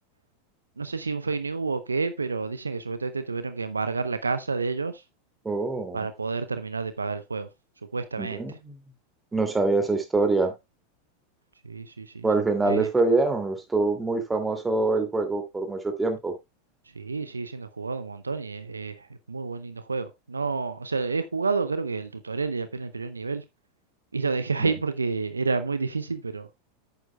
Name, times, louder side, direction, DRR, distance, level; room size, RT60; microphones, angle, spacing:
voice 1, 0.8-5.0 5.9-7.5 7.9-8.4 11.6-12.3 12.6-12.9 17.0-23.4 24.1-26.5, right 4 dB, 85° right, 0.6 m, -29 dB
voice 2, 5.4-6.1 8.2-8.8 9.3-10.5 12.2-16.3 24.6-24.7, right 3 dB, 15° right, 2.5 m, -25 dB
10.5 x 9.0 x 2.3 m
figure-of-eight pair, 90°, 0 cm